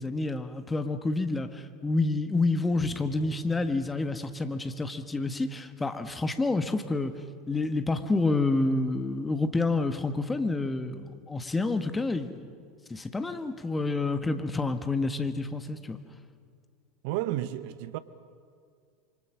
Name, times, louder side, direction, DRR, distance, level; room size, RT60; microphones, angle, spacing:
voice 1, 0.0-7.1 7.5-12.5 12.9-16.0, left 3 dB, 15° left, 1.5 m, -28 dB
voice 2, 17.0-18.0, right 14 dB, 55° right, 0.9 m, -31 dB
27.0 x 24.5 x 6.4 m
figure-of-eight pair, 80°, 0 cm